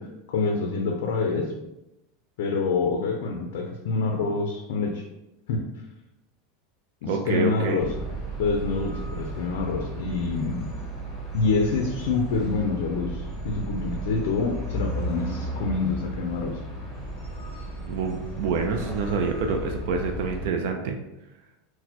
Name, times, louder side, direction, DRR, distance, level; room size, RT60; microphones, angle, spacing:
voice 1, 0.0-1.5 2.4-5.1 5.5-5.7 7.0-7.9 8.4-10.7 11.3-16.6, left 4 dB, 70° left, 3 dB, 0.4 m, -27 dB
voice 2, 7.1-7.8 17.9-21.0, right 5 dB, 55° right, 3 dB, 0.3 m, -27 dB
sound 1, 7.8-20.5, right 1 dB, 5° left, 1.1 m, -34 dB
4.0 x 2.1 x 2.8 m, 0.93 s
supercardioid pair, 175°, 0 cm